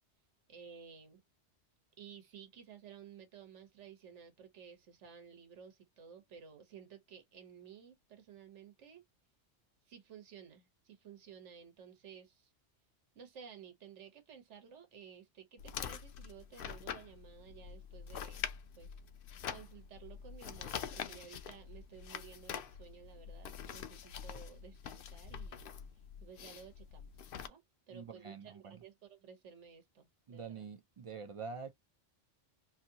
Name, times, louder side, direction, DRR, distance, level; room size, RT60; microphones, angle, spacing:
voice 1, 0.5-1.2 2.0-9.0 9.9-12.5 13.1-18.4 18.7-18.9 19.5-30.7, right 7 dB, 90° right, 1.3 m, -55 dB
sound 1, 15.6-27.5, left 8 dB, 60° left, 0.6 m, -45 dB
voice 2, 27.9-28.8 30.3-31.7, right 5 dB, 55° right, 0.3 m, -46 dB
2.9 x 2.6 x 2.7 m
omnidirectional pair, 1.2 m